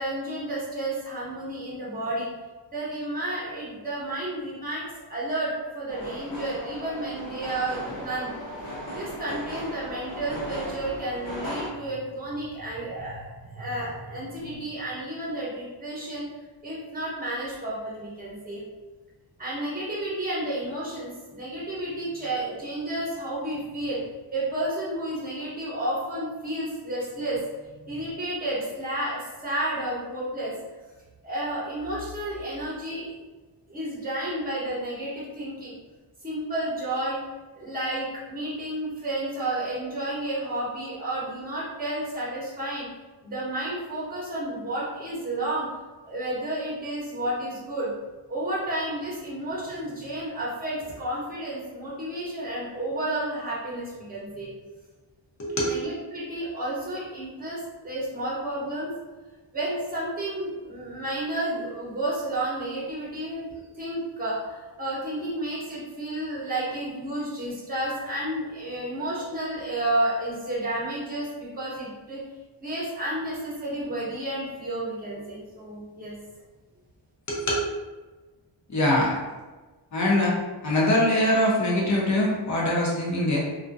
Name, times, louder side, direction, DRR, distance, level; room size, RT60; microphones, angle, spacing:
voice 1, 0.0-2.3 2.7-8.3 8.9-16.2 16.6-18.6 19.4-24.0 24.3-27.4 27.8-30.5 31.2-33.1 33.7-35.8 36.2-37.2 37.5-42.9 43.2-45.8 46.0-47.9 48.3-54.5 55.6-58.9 59.5-71.3 71.5-72.2 72.6-76.1, right 1 dB, 20° right, -7 dB, 1.0 m, -31 dB
sound 1, 5.9-11.7, equal, 70° left, 1.0 m, -36 dB
voice 2, 55.4-55.8 77.3-77.6 78.7-79.1 79.9-80.4 80.6-83.4, left 1 dB, 40° left, -5 dB, 0.8 m, -23 dB
2.4 x 2.1 x 2.6 m, 1.2 s
wide cardioid pair, 105°, 46 cm